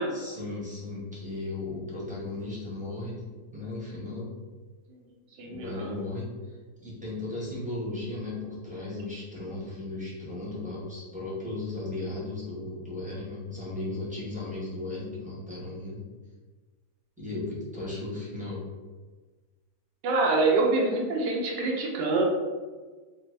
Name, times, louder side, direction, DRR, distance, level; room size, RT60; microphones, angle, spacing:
voice 1, 0.1-4.3 5.5-16.0 17.2-18.6, left 2 dB, 5° right, -9 dB, 0.6 m, -36 dB
voice 2, 5.4-5.9 20.0-22.2, right 3 dB, 85° right, 1 dB, 1.2 m, -25 dB
3.4 x 2.0 x 3.1 m, 1.3 s
omnidirectional pair, 1.8 m